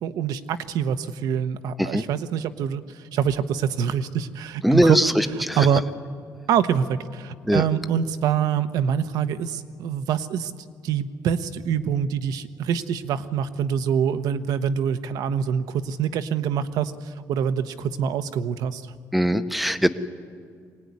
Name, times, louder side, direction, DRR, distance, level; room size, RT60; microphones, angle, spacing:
voice 1, 0.0-5.0 5.3-5.8 6.5-10.5 10.8-18.9, right 8 dB, 75° right, 10 dB, 1.1 m, -25 dB
voice 2, 4.6-5.6 7.4-7.6 19.1-19.9, equal, ahead, 11 dB, 0.8 m, -20 dB
24.5 x 19.0 x 9.6 m, 2.1 s
cardioid pair, 150°, 7 cm